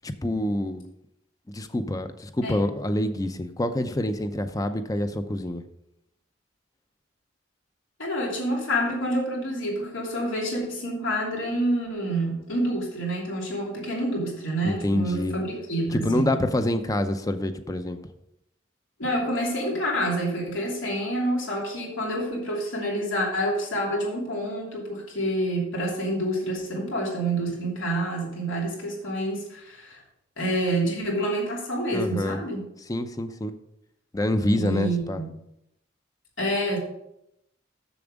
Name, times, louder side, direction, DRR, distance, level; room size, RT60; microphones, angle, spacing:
voice 1, 0.0-0.8 1.5-5.6 14.6-15.4 15.9-18.0 31.9-32.4 32.9-33.5 34.1-35.2, left 1 dB, 20° left, 9 dB, 0.5 m, -26 dB
voice 2, 8.0-16.3 19.0-30.0 30.4-32.7 34.5-35.3 36.4-36.8, right 1 dB, 90° left, -2 dB, 2.9 m, -28 dB
7.0 x 7.0 x 5.1 m, 0.81 s
head